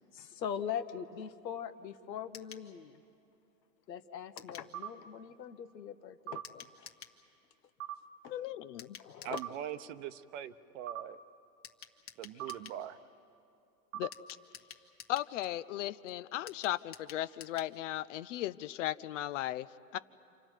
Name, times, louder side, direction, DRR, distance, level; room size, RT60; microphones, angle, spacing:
voice 1, 0.1-3.0 3.9-6.9 8.2-8.4 9.0-9.4 12.5-12.6, left 8 dB, 85° left, 10 dB, 1.3 m, -41 dB
sound 1, 2.3-2.7 4.4-4.7 6.4-7.2 8.8-9.5 11.6-12.8 14.1-15.3 16.5-17.7 18.0-18.1 18.4-18.5, left 9 dB, 30° left, 1.4 m, -51 dB
sound 2, 4.7-4.9 6.3-6.5 7.8-8.0 9.3-9.5 10.9-11.1 12.4-12.6 13.9-14.1, right 13 dB, 30° right, 1.1 m, -40 dB
voice 2, 8.3-9.0 14.0-14.1 15.1-19.7 19.9-20.0, left 14 dB, 50° left, 17 dB, 0.6 m, -36 dB
voice 3, 9.2-11.2 12.2-13.0, right 10 dB, 50° right, 13 dB, 0.9 m, -42 dB
29.5 x 26.0 x 4.5 m, 2.6 s
hypercardioid pair, 130°, 49 cm